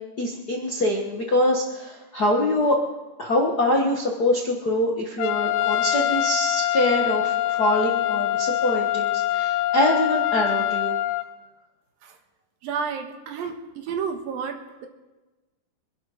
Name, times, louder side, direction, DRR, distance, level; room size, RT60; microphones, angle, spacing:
voice 1, 0.2-2.8 3.2-11.0, left 1 dB, 50° left, -1 dB, 1.1 m, -24 dB
Trumpet, 5.2-11.2, left 13 dB, 80° left, 2.3 m, -24 dB
voice 2, 12.6-14.9, right 6 dB, 80° right, 5 dB, 3.2 m, -31 dB
24.0 x 11.0 x 5.0 m, 1.1 s
omnidirectional pair, 4.0 m